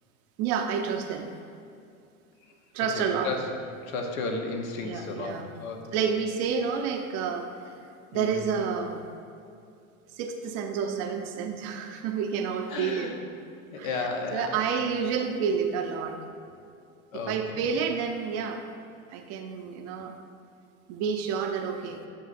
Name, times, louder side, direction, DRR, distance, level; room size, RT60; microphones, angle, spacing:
voice 1, 0.4-1.3 2.7-3.3 4.8-5.5 5.9-7.5 8.1-9.0 10.2-13.1 13.8-16.2 17.1-18.6 19.1-20.1 20.9-22.0, right 6 dB, 35° right, 5 dB, 0.5 m, -29 dB
voice 2, 3.0-3.4 3.9-6.1 8.1-8.5 12.7-13.1 13.7-14.6 17.1-17.4, left 3 dB, 70° left, 3 dB, 1.1 m, -33 dB
10.0 x 5.5 x 2.5 m, 2.5 s
hypercardioid pair, 110°, 42 cm